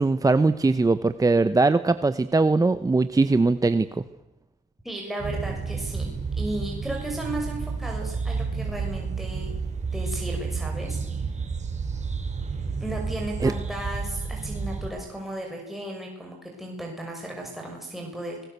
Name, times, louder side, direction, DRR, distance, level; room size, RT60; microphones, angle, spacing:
voice 1, 0.0-4.0 13.4-13.5, right 3 dB, 20° right, 12 dB, 0.9 m, -21 dB
voice 2, 4.8-9.5 9.9-11.0 12.8-18.4, right 1 dB, ahead, -1 dB, 6.1 m, -35 dB
sound 1, 5.2-14.9, right 4 dB, 35° right, 4.2 m, -31 dB
25.5 x 18.5 x 8.2 m, 0.97 s
cardioid pair, 90°, 20 cm